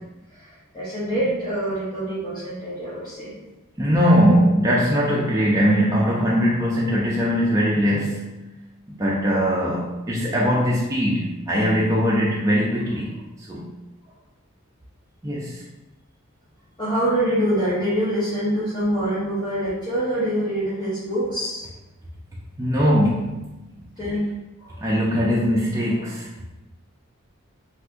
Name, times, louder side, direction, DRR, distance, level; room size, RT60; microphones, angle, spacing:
voice 1, 0.4-3.3 16.8-21.6 24.0-24.3, right 1 dB, 20° left, -12 dB, 0.8 m, -25 dB
voice 2, 3.8-8.3 9.0-13.2 13.5-13.7 15.2-15.6 22.6-23.6 24.8-26.3, equal, 15° right, -5 dB, 0.4 m, -21 dB
2.7 x 2.4 x 3.5 m, 1.0 s
head